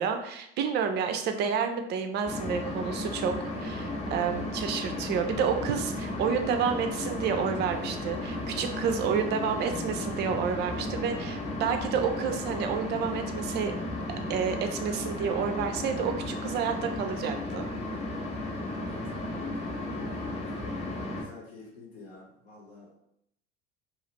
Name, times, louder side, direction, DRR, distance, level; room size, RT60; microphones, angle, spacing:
voice 1, 0.0-3.3 3.6-13.7 14.3-17.6, right 6 dB, 30° right, 6 dB, 0.4 m, -30 dB
sound 1, 2.2-21.2, left 1 dB, 20° left, 0.7 m, -34 dB
voice 2, 18.9-20.2 21.2-23.0, left 3 dB, 65° left, -4 dB, 1.1 m, -50 dB
2.9 x 2.4 x 3.0 m, 0.75 s
figure-of-eight pair, 65°, 34 cm